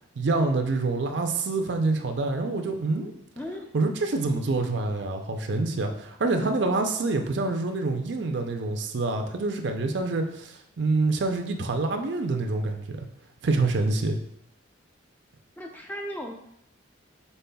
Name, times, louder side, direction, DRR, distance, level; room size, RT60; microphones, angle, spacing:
voice 1, 0.2-3.1 3.7-13.1 13.4-14.2, right 3 dB, 60° right, 4 dB, 0.5 m, -26 dB
voice 2, 3.4-3.7 15.6-16.3, equal, 10° left, 2 dB, 0.4 m, -36 dB
5.4 x 4.1 x 2.3 m, 0.76 s
head